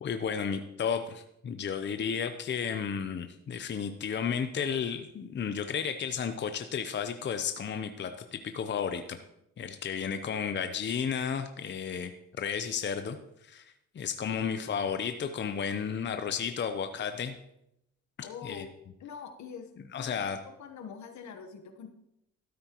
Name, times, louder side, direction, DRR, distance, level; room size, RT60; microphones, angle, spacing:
voice 1, 0.0-9.2 9.6-12.1 12.4-13.2 13.4-13.7 13.9-17.3 18.2-18.7 19.9-20.4, left 7 dB, 35° left, 8 dB, 0.7 m, -33 dB
voice 2, 18.2-18.7 19.0-19.7 20.0-21.9, left 6 dB, 70° left, 7 dB, 1.2 m, -44 dB
13.0 x 8.7 x 3.0 m, 0.81 s
cardioid pair, 90°, 30 cm